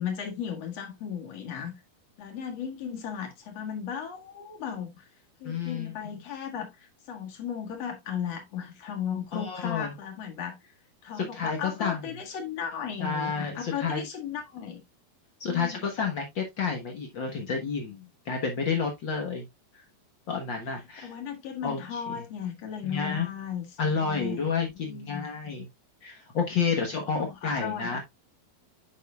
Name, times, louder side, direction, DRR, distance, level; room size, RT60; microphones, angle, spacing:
voice 1, 0.0-1.7 2.2-5.1 5.4-10.7 11.0-14.8 15.4-15.9 21.0-24.5 24.7-25.3 27.1-28.0, left 8 dB, 50° left, 2.3 m, -36 dB
voice 2, 5.4-5.9 9.3-9.9 11.2-12.1 13.0-14.1 15.4-19.5 19.7-19.8 20.3-21.1 21.6-22.0 22.8-23.3 23.8-25.7 26.0-28.0, left 5 dB, 90° left, 1.0 m, -30 dB
9.3 x 6.3 x 2.4 m
omnidirectional pair, 4.3 m